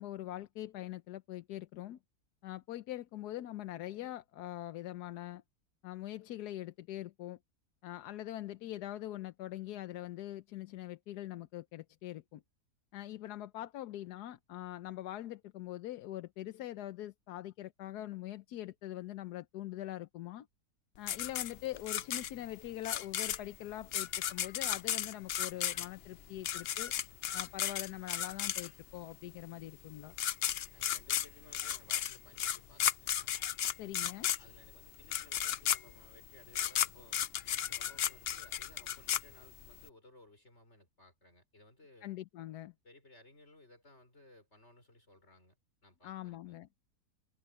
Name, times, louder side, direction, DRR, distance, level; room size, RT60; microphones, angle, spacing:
voice 1, 0.0-2.0 2.4-5.4 5.8-7.4 7.8-12.4 12.9-20.5 21.0-26.9 27.3-30.2 33.8-34.3 42.0-42.7 46.0-46.7, left 14 dB, 85° left, 1.3 m, -43 dB
sound 1, 21.1-29.0 29.8-29.9 30.1-39.8, left 10 dB, 65° left, 0.6 m, -34 dB
voice 2, 30.7-33.3 34.4-42.1 42.8-45.6 45.8-46.6, left 2 dB, 40° left, 6.1 m, -60 dB
omnidirectional pair, 1.7 m